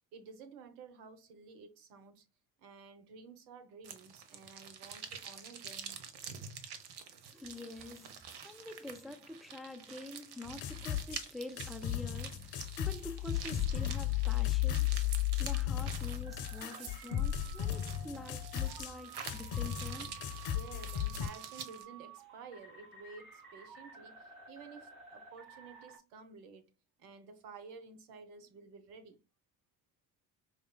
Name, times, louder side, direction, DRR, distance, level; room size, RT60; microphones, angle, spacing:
voice 1, 0.1-2.2 2.6-6.0 20.5-26.7 27.0-29.2, right 5 dB, 80° right, 1.0 m, -52 dB
sound 1, 3.8-21.8, right 7 dB, 55° right, 1.0 m, -48 dB
voice 2, 7.3-20.1, left 2 dB, ahead, 0.4 m, -47 dB
sound 2, 10.5-11.3 11.6-18.9 19.2-21.3, left 12 dB, 50° left, 0.7 m, -35 dB
sound 3, 16.2-26.0, right 6 dB, 40° right, 2.5 m, -53 dB
4.8 x 3.0 x 2.2 m
hypercardioid pair, 60°, 48 cm